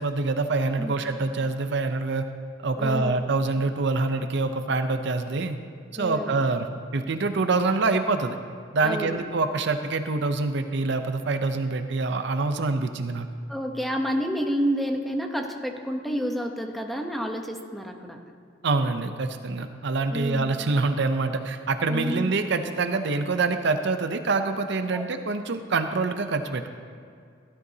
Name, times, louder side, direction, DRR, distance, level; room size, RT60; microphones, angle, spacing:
voice 1, 0.0-2.3 2.6-5.6 5.9-6.7 6.9-8.4 8.7-13.3 18.6-26.7, right 3 dB, 65° right, 8 dB, 0.6 m, -25 dB
voice 2, 2.8-3.2 6.0-6.4 8.8-9.2 13.5-18.2 20.1-20.5 21.9-22.3 24.9-25.0, equal, ahead, 3 dB, 0.9 m, -29 dB
16.5 x 12.5 x 2.8 m, 2.3 s
head